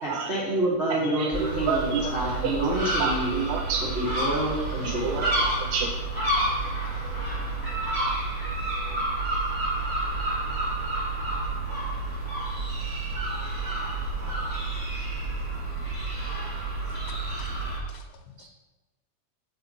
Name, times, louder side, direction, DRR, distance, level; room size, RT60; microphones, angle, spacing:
voice 1, 0.0-3.4 3.9-5.2, right 1 dB, 55° right, -8 dB, 0.7 m, -28 dB
voice 2, 0.9-2.1 2.4-4.1 4.8-6.0 18.4-18.5, right 6 dB, 80° right, 2 dB, 2.0 m, -30 dB
sound 1, 1.3-17.8, right 2 dB, 5° left, 1.9 m, -29 dB
voice 3, 17.1-17.5 17.9-18.5, left 8 dB, 80° left, 2 dB, 1.9 m, -50 dB
6.6 x 4.6 x 5.3 m, 1.1 s
omnidirectional pair, 3.7 m